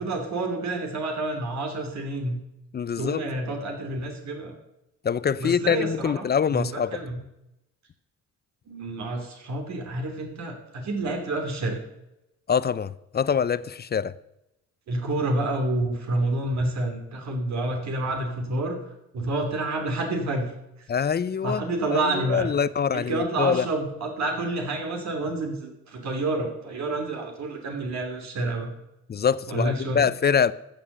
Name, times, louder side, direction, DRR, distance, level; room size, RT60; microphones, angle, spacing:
voice 1, 0.0-2.4 3.0-4.5 5.4-7.2 8.7-11.8 14.9-18.8 19.1-20.5 21.4-22.5 22.9-28.7 29.5-30.0, right 2 dB, 65° right, 2.8 m, -29 dB
voice 2, 2.7-3.3 5.0-7.0 12.5-14.1 20.9-21.6 21.9-23.7 29.1-30.5, left 7 dB, 35° left, 0.6 m, -24 dB
14.5 x 7.2 x 6.7 m
cardioid pair, 90°, 30 cm